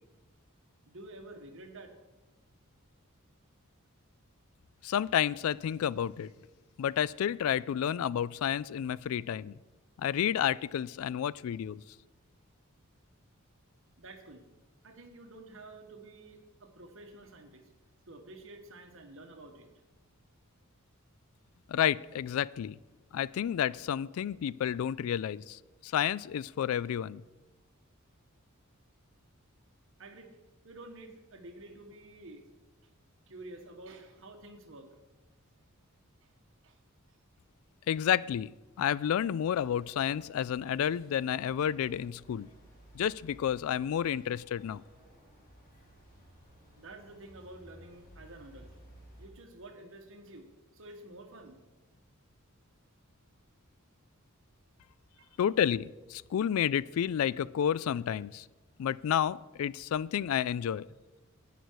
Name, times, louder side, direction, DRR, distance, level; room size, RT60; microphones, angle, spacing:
voice 1, 0.9-1.9 14.0-14.4 14.8-17.7 18.1-19.7 30.0-30.3 30.6-32.4 33.3-34.9 36.2-36.3 36.6-36.8 37.1-37.2 46.7-48.7 49.2-50.5 50.7-51.6 55.2-55.4, right 2 dB, 60° right, 4 dB, 1.5 m, -50 dB
voice 2, 4.8-6.3 6.8-9.6 10.0-11.8 21.7-22.8 23.1-27.2 37.9-38.5 38.8-42.5 42.9-44.8 55.4-58.5 58.8-60.9, left 9 dB, 75° left, 21 dB, 0.3 m, -30 dB
sound 1, 39.5-49.3, right 1 dB, 40° left, 3.1 m, -57 dB
11.0 x 9.3 x 4.7 m, 1.1 s
head